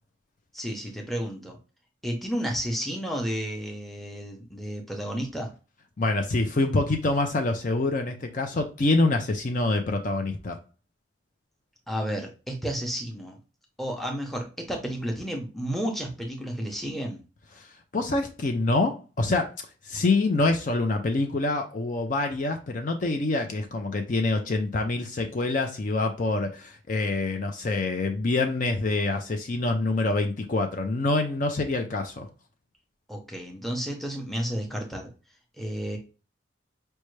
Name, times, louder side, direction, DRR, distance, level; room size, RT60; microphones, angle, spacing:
voice 1, 0.5-1.6 2.0-5.5 11.9-13.4 13.8-17.2 33.1-35.1 35.6-36.0, equal, ahead, 0.7 m, -32 dB
voice 2, 6.0-10.6 17.6-17.7 17.9-19.5 19.8-32.3, left 2 dB, 45° left, 0.5 m, -26 dB
5.4 x 2.2 x 3.2 m
head